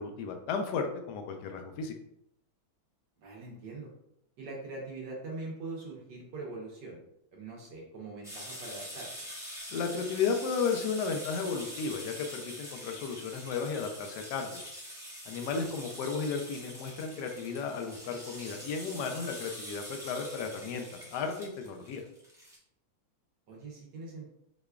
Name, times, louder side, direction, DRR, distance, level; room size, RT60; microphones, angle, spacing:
voice 1, 0.0-1.9 9.7-14.8 15.3-20.8 21.1-22.0, left 5 dB, 75° left, 4 dB, 1.0 m, -34 dB
voice 2, 3.2-3.9 4.4-7.0 7.3-9.1 15.6-15.7 23.5-24.3, right 3 dB, 65° right, -3 dB, 1.3 m, -42 dB
sound 1, 8.2-22.6, equal, 5° right, 0.3 m, -45 dB
4.9 x 2.2 x 2.3 m, 0.79 s
omnidirectional pair, 2.2 m